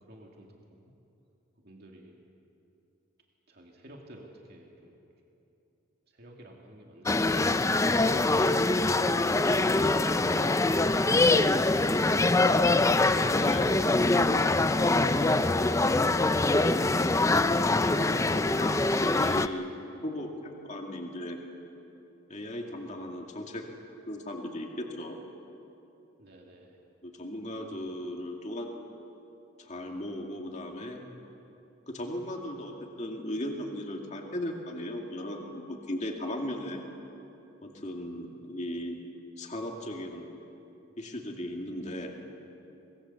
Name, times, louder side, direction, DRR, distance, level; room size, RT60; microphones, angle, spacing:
voice 1, 0.0-0.5 1.6-2.2 3.5-4.9 6.1-7.7 22.5-22.6 26.2-26.8, right 1 dB, 50° right, -1 dB, 2.5 m, -50 dB
sound 1, 7.1-19.5, left 2 dB, 15° left, 0.4 m, -24 dB
voice 2, 13.3-13.7 17.9-18.7 19.0-19.7 20.0-21.4 22.3-23.6 24.1-25.2 27.0-28.7 29.6-31.0 31.9-36.8 37.6-39.0 39.4-40.3 41.0-42.1, left 1 dB, 35° left, 1 dB, 2.3 m, -37 dB
25.0 x 20.5 x 7.2 m, 2.9 s
head